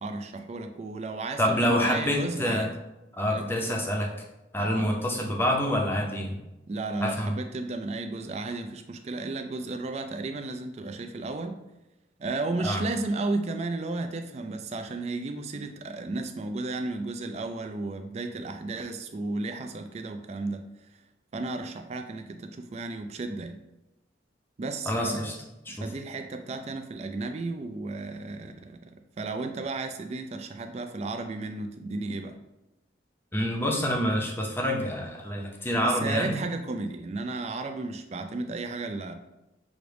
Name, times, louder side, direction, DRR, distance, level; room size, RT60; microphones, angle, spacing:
voice 1, 0.0-2.7 3.3-3.6 4.6-5.0 6.7-11.6 12.2-20.6 21.3-23.6 24.6-25.2 25.7-32.4 35.8-39.1, right 3 dB, 35° right, 7 dB, 0.3 m, -33 dB
voice 2, 1.4-2.7 3.2-4.1 4.5-6.4 7.0-7.4 12.6-12.8 24.9-25.3 25.7-25.9 33.3-36.4, equal, 10° left, 0 dB, 0.6 m, -27 dB
5.9 x 2.6 x 3.3 m, 0.99 s
head